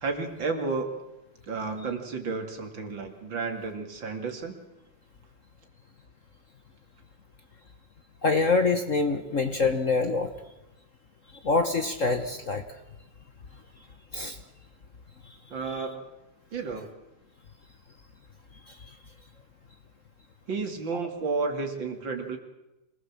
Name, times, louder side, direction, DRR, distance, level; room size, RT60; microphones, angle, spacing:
voice 1, 0.0-0.9 1.5-4.6 15.5-16.1 16.5-16.9 20.5-22.4, right 4 dB, 60° right, 5 dB, 3.1 m, -32 dB
voice 2, 8.2-10.3 11.4-12.6 14.1-14.4, left 3 dB, 45° left, 7 dB, 1.3 m, -25 dB
25.5 x 19.0 x 7.5 m, 0.95 s
omnidirectional pair, 2.4 m